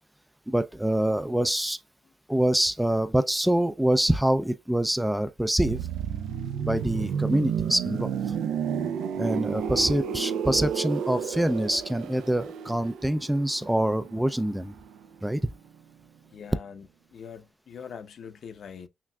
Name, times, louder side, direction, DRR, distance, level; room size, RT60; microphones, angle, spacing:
voice 1, 0.5-1.8 2.3-5.8 6.6-8.1 9.2-14.7 15.2-15.4, right 1 dB, 5° right, 0.3 m, -25 dB
sound 1, 5.6-15.3 15.5-15.8, right 8 dB, 80° right, 0.4 m, -32 dB
voice 2, 16.3-18.9, left 7 dB, 55° left, 0.6 m, -43 dB
5.8 x 2.4 x 2.2 m
cardioid pair, 90°, 0 cm